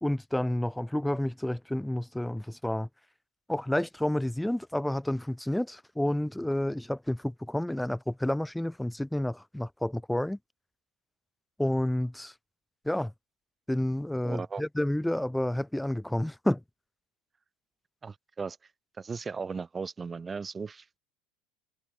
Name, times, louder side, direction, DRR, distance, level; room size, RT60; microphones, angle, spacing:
voice 1, 0.0-2.9 3.5-10.4 11.6-12.3 12.8-13.1 13.7-16.6, left 1 dB, 5° left, 0.6 m, -30 dB
voice 2, 14.2-14.6 18.0-18.6 19.0-21.0, right 5 dB, 20° right, 0.9 m, -37 dB
supercardioid pair, 120°, 0 cm